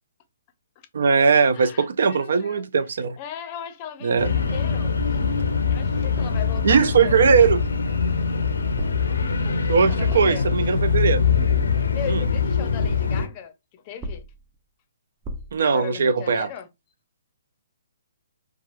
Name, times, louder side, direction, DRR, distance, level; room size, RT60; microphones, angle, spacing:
voice 1, 0.9-3.2 4.0-4.3 6.6-7.6 9.7-11.2 12.1-12.2 15.5-16.5, right 5 dB, 70° right, 0.4 m, -19 dB
voice 2, 1.5-2.7 3.2-5.2 5.7-7.2 9.4-10.5 11.7-14.3 15.6-16.7, left 8 dB, 30° left, 0.5 m, -37 dB
sound 1, 4.2-13.3, left 5 dB, 90° left, 0.6 m, -23 dB
sound 2, 5.0-5.4 6.2-6.6 7.4-7.8 8.8-9.2 10.1-10.5 11.5-12.0 12.8-13.3 14.0-14.5 15.2-15.7, equal, 25° right, 0.6 m, -35 dB
3.0 x 2.3 x 2.4 m
hypercardioid pair, 145°, 0 cm